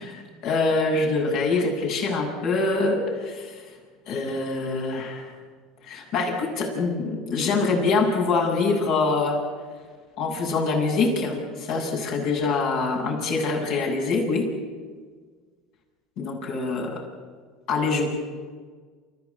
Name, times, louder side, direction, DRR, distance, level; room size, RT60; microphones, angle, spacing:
voice 1, 0.0-3.7 4.1-5.3 5.8-9.4 10.2-14.5 16.2-17.0 17.7-18.1, left 3 dB, 65° left, -1 dB, 8.0 m, -25 dB
29.0 x 14.5 x 8.6 m, 1.5 s
hypercardioid pair, 85°, 0 cm